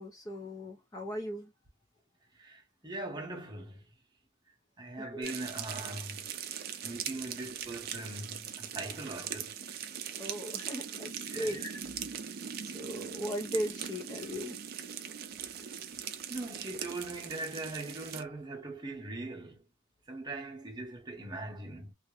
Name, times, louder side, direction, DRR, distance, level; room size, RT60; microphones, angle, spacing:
voice 1, 0.0-1.5 5.0-5.3 10.2-11.8 12.6-14.6, equal, 20° left, 0.4 m, -38 dB
voice 2, 2.4-3.9 4.8-6.3 6.8-9.8 11.3-11.6 16.3-19.6 20.1-21.9, right 2 dB, 25° right, 0.8 m, -41 dB
sound 1, 5.2-18.2, right 8 dB, 55° right, 0.4 m, -41 dB
2.3 x 2.1 x 2.9 m
head